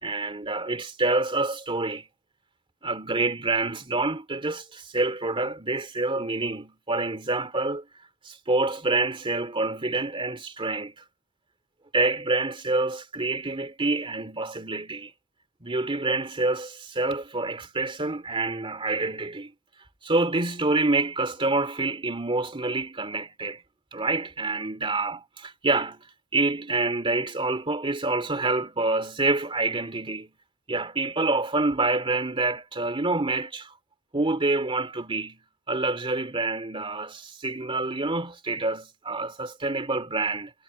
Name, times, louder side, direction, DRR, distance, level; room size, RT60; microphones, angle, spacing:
voice 1, 0.0-2.1 2.8-7.9 8.3-10.9 11.9-15.1 15.6-19.5 20.0-23.6 23.9-26.0 26.3-30.3 30.7-33.7 34.1-35.4 35.7-40.5, right 2 dB, 25° right, 2.7 m, -27 dB
head